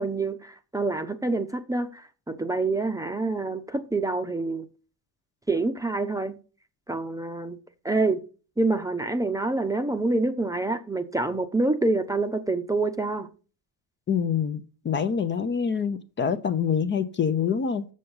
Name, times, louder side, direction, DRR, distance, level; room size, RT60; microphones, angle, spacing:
voice 1, 0.0-4.7 5.5-6.4 6.9-7.6 7.8-8.2 8.6-13.3, right 2 dB, 10° right, 0.8 m, -27 dB
voice 2, 14.1-17.8, left 7 dB, 30° left, 0.8 m, -26 dB
6.9 x 6.4 x 5.5 m
cardioid pair, 115°, 36 cm